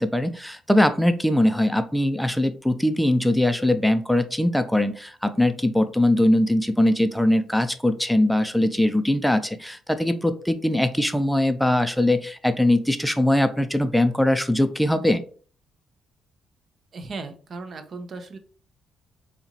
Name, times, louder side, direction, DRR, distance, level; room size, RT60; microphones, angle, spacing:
voice 1, 0.0-15.2, left 1 dB, ahead, 9 dB, 0.4 m, -21 dB
voice 2, 16.9-18.4, right 3 dB, 50° right, 9 dB, 0.6 m, -36 dB
4.3 x 2.9 x 2.8 m, 0.42 s
cardioid pair, 90°, 0 cm